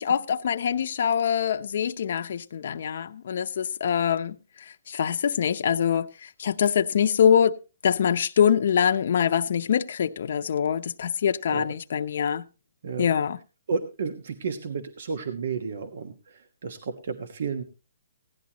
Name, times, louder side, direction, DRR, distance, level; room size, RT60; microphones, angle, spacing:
voice 1, 0.1-4.4 4.9-7.5 7.8-12.4 13.0-13.4, left 8 dB, 60° left, 0.7 m, -24 dB
voice 2, 13.7-17.6, right 5 dB, 60° right, 1.3 m, -32 dB
16.5 x 10.5 x 3.0 m
hypercardioid pair, 165°, 0 cm